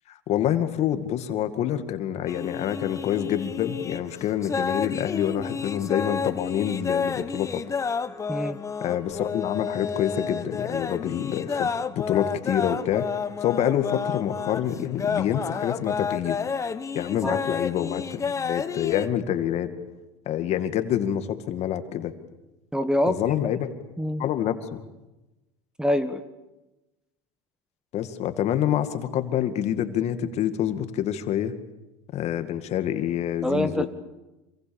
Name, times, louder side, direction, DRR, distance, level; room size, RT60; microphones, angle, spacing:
voice 1, 0.3-7.6 8.8-11.7 12.0-13.0 13.4-16.4 16.9-19.7 20.3-22.1 23.1-23.7 24.2-24.9 27.9-31.5 32.1-33.9, left 10 dB, 50° left, 8 dB, 2.2 m, -27 dB
sound 1, 2.3-19.1, left 5 dB, 20° left, 1.1 m, -30 dB
voice 2, 22.7-23.2 24.0-24.2 25.8-26.2 33.4-33.9, equal, 5° right, 11 dB, 1.6 m, -25 dB
26.5 x 24.5 x 7.2 m, 1.0 s
supercardioid pair, 110°, 15 cm